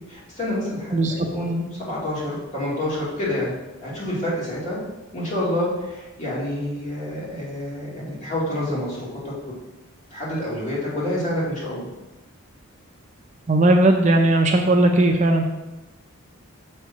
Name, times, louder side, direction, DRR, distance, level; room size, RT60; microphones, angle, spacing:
voice 1, 0.1-3.5 3.8-4.8 5.1-9.3 10.1-11.9, left 1 dB, 35° left, -8 dB, 2.7 m, -28 dB
voice 2, 0.9-1.3 13.5-15.5, right 2 dB, 35° right, 4 dB, 0.5 m, -17 dB
6.2 x 4.4 x 5.8 m, 1.0 s
head